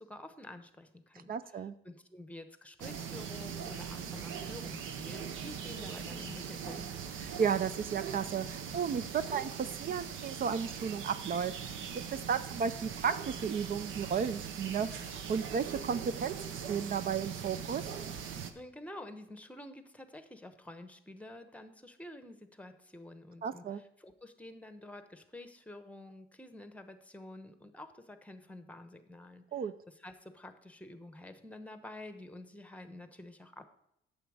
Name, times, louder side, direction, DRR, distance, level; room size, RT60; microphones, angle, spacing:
voice 1, 0.0-6.8 18.5-29.4 29.9-33.7, left 1 dB, 5° left, 9 dB, 1.0 m, -49 dB
voice 2, 1.3-1.7 7.2-11.5 12.1-17.8 23.4-23.8 29.5-29.7, right 7 dB, 45° right, 13 dB, 0.5 m, -34 dB
sound 1, 2.8-18.5, right 7 dB, 85° right, 0.9 m, -41 dB
9.1 x 7.1 x 4.8 m, 0.79 s
cardioid pair, 90°, 20 cm